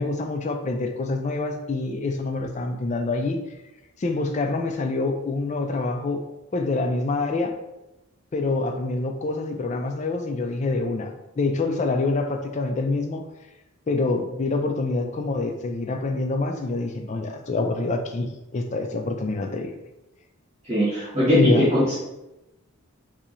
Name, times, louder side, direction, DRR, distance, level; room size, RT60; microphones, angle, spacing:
voice 1, 0.0-3.4 4.0-6.2 6.5-7.6 8.3-13.2 13.9-19.8 21.3-21.6, left 3 dB, 30° left, 5 dB, 0.3 m, -26 dB
voice 2, 20.6-22.0, equal, 30° right, -12 dB, 1.2 m, -21 dB
4.3 x 2.7 x 2.5 m, 0.97 s
head